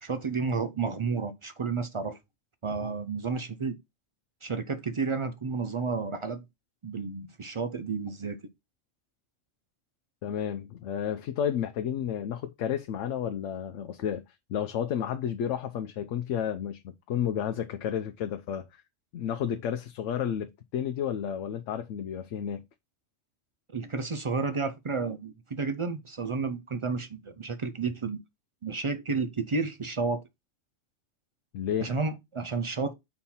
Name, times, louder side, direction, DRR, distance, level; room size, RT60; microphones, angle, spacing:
voice 1, 0.0-2.2 2.6-3.8 4.4-6.4 6.8-8.4 23.7-28.2 28.6-30.2 31.8-32.9, right 4 dB, 55° right, 0.3 m, -31 dB
voice 2, 10.2-14.2 14.5-18.8 19.1-22.6 31.5-31.9, left 9 dB, 75° left, 0.9 m, -31 dB
4.4 x 4.3 x 5.5 m
omnidirectional pair, 1.3 m